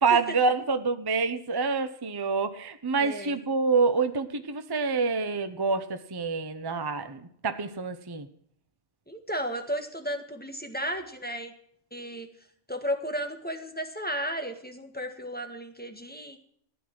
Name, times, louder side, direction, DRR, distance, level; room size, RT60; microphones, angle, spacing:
voice 1, 0.0-8.3, right 4 dB, 20° right, 9 dB, 0.8 m, -27 dB
voice 2, 3.0-3.4 9.1-11.5 11.9-12.3 12.7-16.4, equal, 10° left, 5 dB, 1.7 m, -34 dB
15.0 x 10.0 x 6.0 m, 0.66 s
omnidirectional pair, 1.3 m